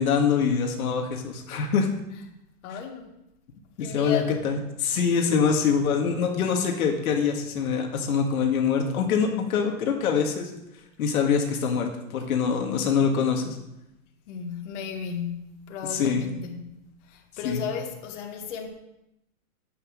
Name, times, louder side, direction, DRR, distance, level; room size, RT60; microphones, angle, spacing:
voice 1, 0.0-1.9 3.8-10.5 11.0-13.6 15.8-16.2 17.4-17.6, left 6 dB, 75° left, 2.0 m, -24 dB
voice 2, 2.6-3.2 3.8-4.4 14.3-16.8 17.1-18.7, left 7 dB, 55° left, 2.1 m, -34 dB
9.3 x 8.6 x 6.4 m
supercardioid pair, 160°, 43 cm